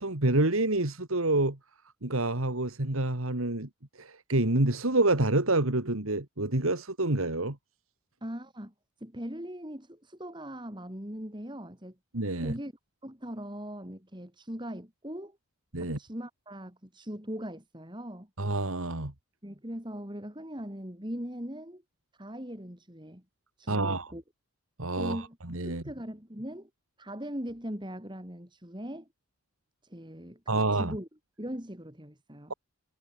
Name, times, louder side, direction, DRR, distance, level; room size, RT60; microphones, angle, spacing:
voice 1, 0.0-1.6 2.0-3.7 4.0-7.6 12.1-12.5 15.7-16.0 18.4-19.1 23.7-24.1 24.8-25.8 30.5-31.0, right 2 dB, 75° right, 2.5 m, -27 dB
voice 2, 8.2-8.7 9.0-12.0 12.4-12.7 13.0-15.4 15.8-18.3 19.4-21.8 22.2-23.2 23.6-24.2 25.0-25.4 25.6-26.7 27.0-29.1 29.8-31.1 31.4-32.5, equal, 20° right, 3.5 m, -40 dB
head